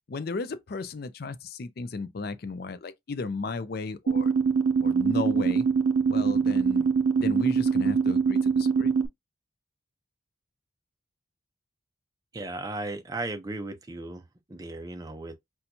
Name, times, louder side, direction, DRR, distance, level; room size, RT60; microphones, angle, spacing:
voice 1, 0.1-4.3 4.8-5.7 6.1-6.9 7.2-8.9, left 3 dB, 50° left, 0.4 m, -34 dB
sound 1, 4.1-9.1, right 5 dB, 85° right, 0.4 m, -23 dB
voice 2, 12.3-14.2 14.5-15.3, right 2 dB, 20° right, 0.5 m, -35 dB
4.3 x 2.3 x 2.6 m
head